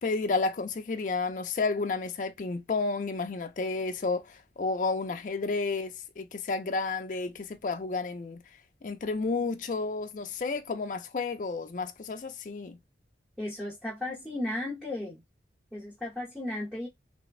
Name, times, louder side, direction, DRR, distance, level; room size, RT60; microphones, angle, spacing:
voice 1, 0.0-8.4 8.8-12.8, left 3 dB, 45° left, 0.4 m, -31 dB
voice 2, 13.4-15.2 15.7-16.9, left 1 dB, ahead, 0.8 m, -35 dB
3.3 x 2.1 x 2.2 m
head